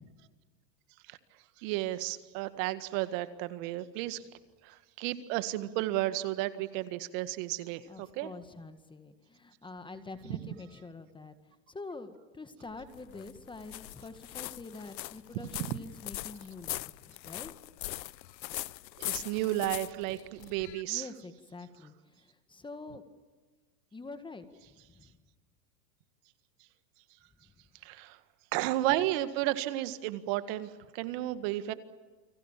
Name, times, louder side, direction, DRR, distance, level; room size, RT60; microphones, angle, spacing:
voice 1, 1.6-4.2 4.6-8.3 19.0-21.1 27.9-28.2 28.5-31.7, right 15 dB, 50° right, 12 dB, 1.9 m, -33 dB
voice 2, 7.9-11.4 11.7-17.5 20.9-23.0 23.9-24.4 24.9-25.2, left 3 dB, 10° left, 9 dB, 1.9 m, -46 dB
sound 1, 12.6-20.8, left 16 dB, 85° left, 0.9 m, -41 dB
29.5 x 24.0 x 7.5 m, 1.4 s
supercardioid pair, 130°, 49 cm